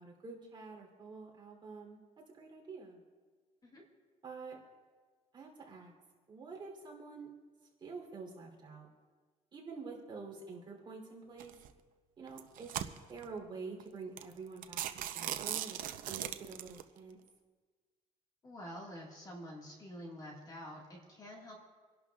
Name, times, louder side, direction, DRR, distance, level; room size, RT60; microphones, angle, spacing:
voice 1, 0.0-3.0 4.2-4.6 5.3-5.9 6.3-7.3 7.8-8.9 9.5-11.5 12.2-12.7 13.1-14.8 15.1-15.8 16.1-17.2, right 4 dB, 35° right, -1 dB, 3.1 m, -47 dB
sound 1, 11.4-11.7 12.3-13.3 13.8-13.9 14.2-14.3 14.6-16.8, right 11 dB, 80° right, 0.7 m, -39 dB
voice 2, 18.4-21.6, equal, 30° left, -2 dB, 1.8 m, -48 dB
28.0 x 11.5 x 2.4 m, 1.5 s
cardioid pair, 150°, 14 cm